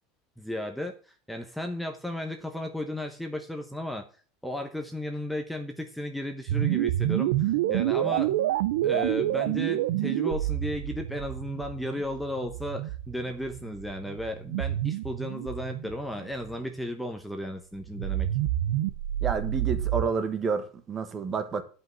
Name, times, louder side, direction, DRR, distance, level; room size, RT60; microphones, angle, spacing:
voice 1, 0.4-4.0 4.4-8.3 8.8-18.3, left 1 dB, ahead, 0.9 m, -34 dB
sound 1, 6.5-16.6 17.9-20.0, right 13 dB, 90° right, 0.7 m, -28 dB
voice 2, 19.2-21.6, right 5 dB, 20° right, 1.2 m, -29 dB
10.5 x 5.5 x 7.5 m
supercardioid pair, 160°, 0 cm